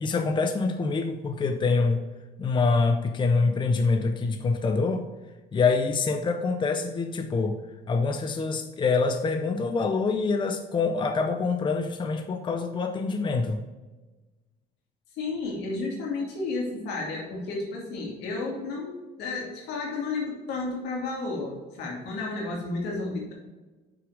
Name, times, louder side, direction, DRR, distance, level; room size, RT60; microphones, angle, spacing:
voice 1, 0.0-2.0 2.4-5.0 5.5-7.6 7.9-13.6, left 4 dB, 30° left, 6 dB, 0.6 m, -25 dB
voice 2, 15.1-23.3, left 3 dB, 85° left, -2 dB, 2.4 m, -32 dB
6.1 x 4.8 x 4.9 m, 1.2 s
cardioid pair, 110°, 17 cm